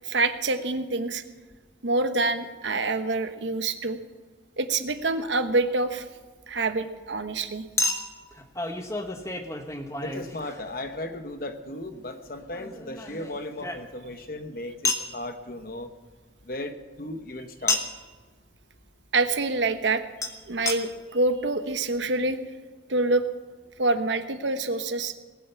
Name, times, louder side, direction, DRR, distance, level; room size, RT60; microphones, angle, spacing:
voice 1, 0.0-1.2 1.8-4.0 4.6-6.0 6.5-7.6 19.1-20.0 20.5-22.4 22.9-23.2 23.8-25.2, right 3 dB, 85° right, 9 dB, 1.1 m, -26 dB
Chink clink, 5.0-5.1 7.8-11.0 12.5-14.2 14.8-15.1 17.7-18.1 20.2-20.3 20.7-20.8 21.4-21.5 21.7-21.8, left 3 dB, 15° left, 1.1 m, -30 dB
voice 2, 10.0-15.9 16.5-17.8, left 1 dB, 50° left, 8 dB, 1.2 m, -36 dB
19.0 x 9.1 x 7.0 m, 1.3 s
head